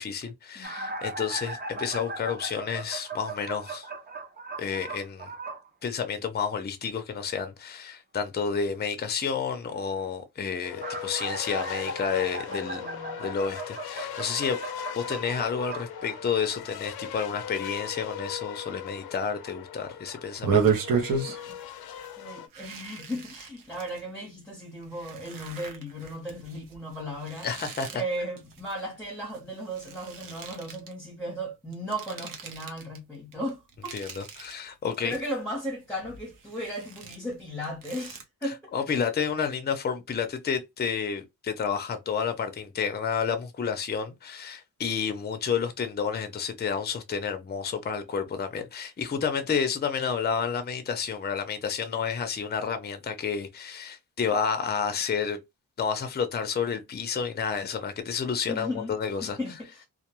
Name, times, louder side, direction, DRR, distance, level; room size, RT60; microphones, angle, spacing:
voice 1, 0.0-3.9 4.6-5.3 5.8-12.8 13.2-14.6 14.9-20.8 27.4-27.9 33.9-35.2 38.4-55.4 55.8-59.4, left 6 dB, 30° left, 0.5 m, -30 dB
voice 2, 0.5-0.9 12.5-13.3 22.2-27.5 27.9-34.2 35.0-39.0 58.5-58.9 59.2-59.9, equal, 5° left, 0.8 m, -36 dB
sound 1, 0.6-5.7 10.5-16.7 17.8-17.9 19.0-19.1 19.4-19.5, right 2 dB, 25° right, 0.6 m, -38 dB
sound 2, 10.6-22.5, left 9 dB, 85° left, 0.5 m, -39 dB
sound 3, 20.3-21.7 22.0-22.1 22.5-24.0 24.6-29.4 29.7-30.9 31.7-33.0 33.3-34.5 34.9-35.7 36.0-38.2, right 6 dB, 65° right, 0.8 m, -32 dB
2.3 x 2.2 x 2.9 m
wide cardioid pair, 135°, 36 cm